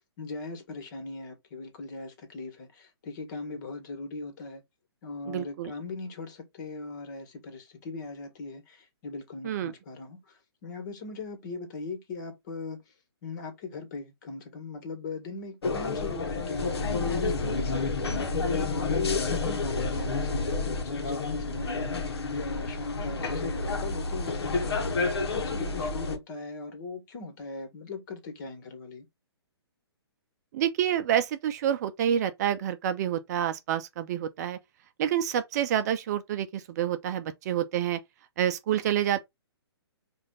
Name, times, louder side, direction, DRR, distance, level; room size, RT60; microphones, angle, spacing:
voice 1, 0.2-4.6 5.0-12.8 13.2-18.3 18.7-29.1, left 4 dB, 45° left, 1.7 m, -39 dB
voice 2, 5.3-5.7 9.4-9.7 30.5-34.6 35.0-38.0 38.4-39.2, right 10 dB, 40° right, 0.6 m, -28 dB
sound 1, 15.6-26.2, left 3 dB, 70° left, 1.1 m, -29 dB
4.9 x 2.6 x 3.8 m
hypercardioid pair, 130°, 14 cm